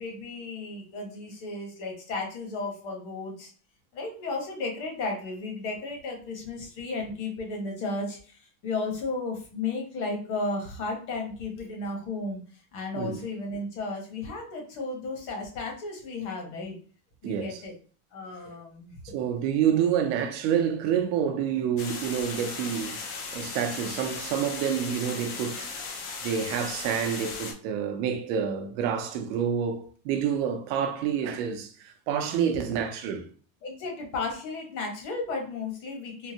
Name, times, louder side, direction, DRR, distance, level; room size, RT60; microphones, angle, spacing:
voice 1, 0.0-3.5 3.9-12.4 12.7-16.8 17.2-17.7 18.1-19.2 33.6-36.3, left 3 dB, 50° left, 1.2 m, -34 dB
voice 2, 17.2-17.6 19.1-23.0 23.3-25.9 26.2-33.3, right 8 dB, 60° right, 0.7 m, -28 dB
sound 1, 21.8-27.5, left 4 dB, 35° left, 0.4 m, -37 dB
3.8 x 2.2 x 2.7 m
cardioid pair, 165°, 41 cm